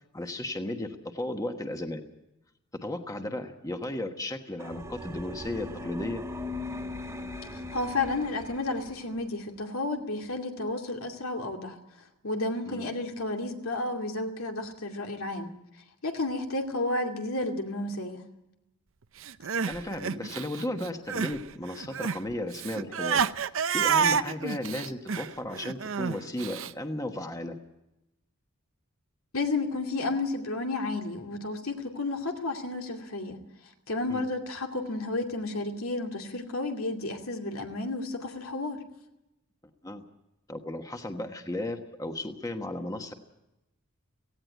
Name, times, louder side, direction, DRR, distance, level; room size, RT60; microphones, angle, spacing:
voice 1, 0.1-2.0 2.8-6.2 12.7-12.9 19.6-23.2 23.7-27.5 34.1-34.2 39.8-40.0 40.5-43.1, left 1 dB, 15° left, 5 dB, 1.3 m, -35 dB
sound 1, 4.6-9.2, left 2 dB, 15° right, 1.7 m, -39 dB
voice 2, 7.5-11.8 12.2-15.5 16.0-18.2 29.3-33.4 33.9-38.8, left 2 dB, 85° left, 3 dB, 2.6 m, -32 dB
Crying sobbing, 19.2-21.4 21.7-26.7, right 6 dB, 65° right, 0.7 m, -29 dB
17.5 x 16.5 x 9.2 m, 0.91 s
head